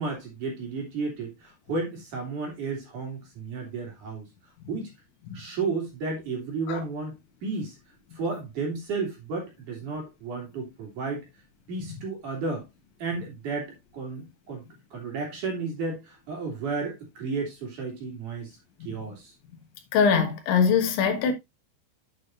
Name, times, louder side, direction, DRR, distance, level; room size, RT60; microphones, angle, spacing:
voice 1, 0.0-4.3 4.7-4.9 5.3-7.2 7.4-7.8 8.1-11.3 11.7-12.7 13.0-14.6 14.9-18.5 18.8-19.3, right 4 dB, 45° right, 3.6 m, -33 dB
voice 2, 19.9-21.3, left 6 dB, 75° left, 3.6 m, -22 dB
8.6 x 8.4 x 2.6 m
omnidirectional pair, 5.5 m